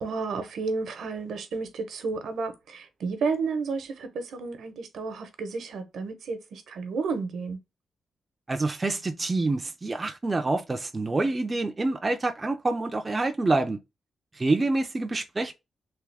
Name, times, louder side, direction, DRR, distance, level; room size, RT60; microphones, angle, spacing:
voice 1, 0.0-7.6, right 4 dB, 75° right, 0.9 m, -32 dB
voice 2, 8.5-13.8 14.3-15.5, right 2 dB, 20° right, 0.4 m, -27 dB
3.5 x 2.8 x 3.3 m
wide cardioid pair, 180°, 0 cm